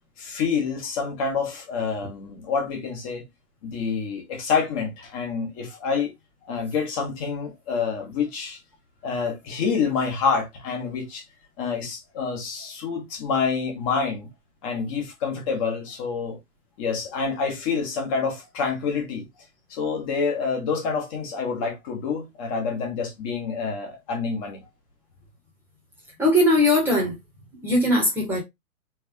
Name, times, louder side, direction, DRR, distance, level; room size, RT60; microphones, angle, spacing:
voice 1, 0.2-3.2 3.6-6.1 6.4-8.6 9.0-11.2 11.6-14.3 14.6-16.4 16.8-19.3 19.7-24.7, left 5 dB, 20° left, 1.4 m, -27 dB
voice 2, 26.2-27.1 27.6-28.4, left 1 dB, 5° right, 1.3 m, -19 dB
4.1 x 3.5 x 3.5 m
hypercardioid pair, 155°, 45 cm